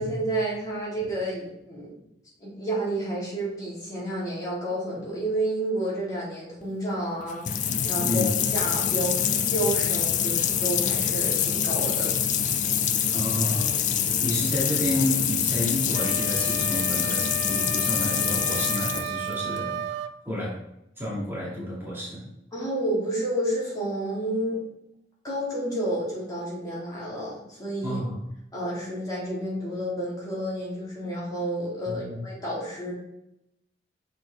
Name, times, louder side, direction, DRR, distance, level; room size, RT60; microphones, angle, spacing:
voice 1, 0.0-2.0 2.4-12.1 12.5-12.6 22.5-24.6 25.2-28.0 28.5-32.9, right 1 dB, 20° left, -6 dB, 2.6 m, -30 dB
sound 1, 7.2-19.6, left 8 dB, 45° left, 0.5 m, -25 dB
voice 2, 13.1-13.8 14.2-20.5 21.0-22.2 27.8-28.2 31.9-32.2, left 1 dB, 15° right, -7 dB, 1.9 m, -30 dB
sound 2, 15.9-20.2, right 9 dB, 65° right, 0.3 m, -34 dB
6.4 x 5.9 x 3.2 m, 0.81 s
head